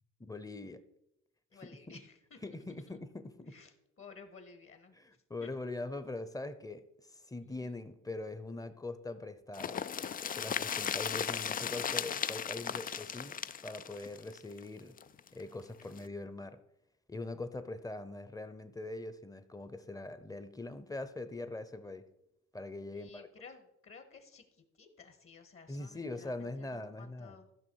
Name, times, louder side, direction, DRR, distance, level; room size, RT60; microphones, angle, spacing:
voice 1, 0.2-0.8 1.5-2.0 2.4-3.6 4.9-9.8 10.4-14.9 15.3-16.6 17.1-22.1 22.5-23.3 25.7-27.4, left 2 dB, 10° left, 12 dB, 0.8 m, -42 dB
voice 2, 1.5-3.0 3.5-3.7 4.0-5.0 5.4-5.5 7.4-7.7 22.9-27.5, left 5 dB, 45° left, 7 dB, 1.6 m, -55 dB
sound 1, 9.5-15.3 15.6-15.7 16.0-16.1, left 8 dB, 30° left, 0.3 m, -36 dB
14.0 x 6.0 x 4.7 m, 0.83 s
cardioid pair, 90°, 30 cm